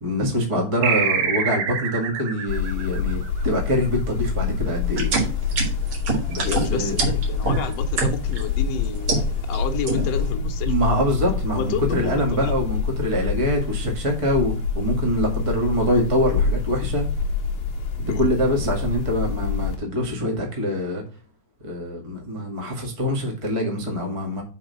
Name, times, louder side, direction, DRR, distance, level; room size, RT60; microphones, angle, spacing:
voice 1, 0.0-5.1 6.3-7.0 10.6-17.0 18.0-21.0 21.6-24.4, equal, 30° right, 0.6 m, -24 dB
sound 1, 0.8-3.8, right 7 dB, 80° right, 2.7 m, -26 dB
sound 2, 2.5-19.8, left 5 dB, 90° left, 1.1 m, -26 dB
sound 3, 4.9-8.4 8.8-9.6 9.9-10.3, right 4 dB, 45° right, 2.3 m, -25 dB
voice 2, 6.4-10.7 11.6-12.5 18.1-18.3, left 6 dB, 65° left, 1.7 m, -30 dB
5.7 x 4.9 x 5.6 m
omnidirectional pair, 4.1 m